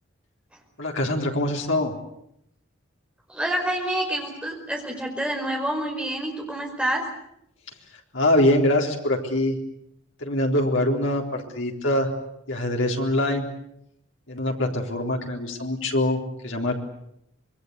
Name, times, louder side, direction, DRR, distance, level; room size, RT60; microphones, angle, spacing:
voice 1, 0.8-1.9 8.1-9.6 10.2-12.1 12.5-13.5 14.3-16.7, left 1 dB, 70° left, 1 dB, 3.9 m, -23 dB
voice 2, 3.3-7.0, right 1 dB, 5° right, 1 dB, 5.1 m, -27 dB
26.0 x 21.5 x 8.2 m, 0.76 s
head